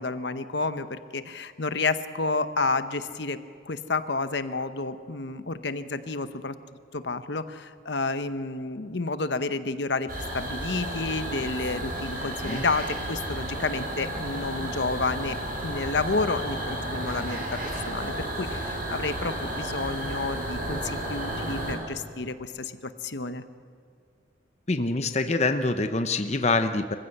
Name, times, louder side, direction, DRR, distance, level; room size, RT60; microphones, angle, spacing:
voice 1, 0.0-3.4 3.7-6.6 6.9-10.1 10.3-15.4 15.6-17.5 17.7-23.4, left 3 dB, 65° left, 11 dB, 0.9 m, -30 dB
sound 1, 10.1-21.7, right 1 dB, 45° right, 6.7 m, -32 dB
voice 2, 24.7-27.0, left 3 dB, 35° left, 8 dB, 0.8 m, -25 dB
25.5 x 15.5 x 7.9 m, 2.3 s
head